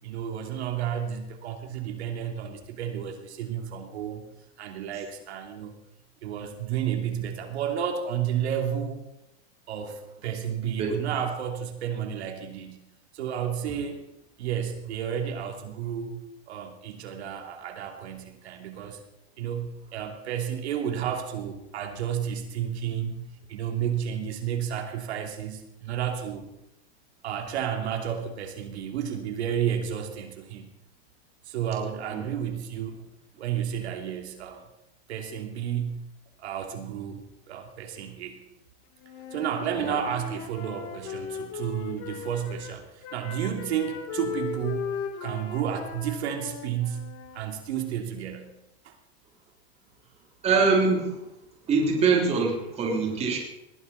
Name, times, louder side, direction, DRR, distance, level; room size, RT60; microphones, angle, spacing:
voice 1, 0.0-4.2 4.6-5.7 6.2-9.0 9.7-12.8 13.1-14.1 14.4-19.0 19.4-26.5 27.2-30.7 31.4-33.1 33.4-34.6 35.1-36.0 36.4-38.4 39.3-44.9 45.2-47.1 47.3-48.5 48.8-49.0, right 9 dB, 85° right, 4 dB, 3.0 m, -31 dB
Wind instrument woodwind instrument, 39.0-42.7 43.0-47.4, left 7 dB, 40° left, 2.2 m, -37 dB
voice 2, 50.4-51.2 51.7-53.4, right 4 dB, 20° right, 1 dB, 3.2 m, -23 dB
20.0 x 15.5 x 4.2 m, 0.88 s
supercardioid pair, 165°, 32 cm